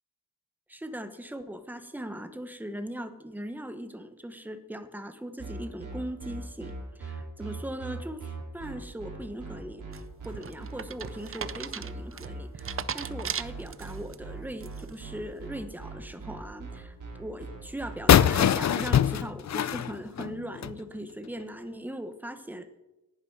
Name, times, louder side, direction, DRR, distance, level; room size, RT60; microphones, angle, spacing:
voice 1, 0.7-6.7 7.0-22.8, right 1 dB, 5° right, 9 dB, 1.1 m, -39 dB
sound 1, 5.4-18.0, right 4 dB, 60° right, 5.9 m, -40 dB
sound 2, 9.9-14.1 14.6-15.0, right 7 dB, 40° right, 0.5 m, -37 dB
sound 3, 18.1-20.8, left 10 dB, 50° left, 0.5 m, -22 dB
19.0 x 11.0 x 4.8 m, 1.0 s
wide cardioid pair, 175°, 36 cm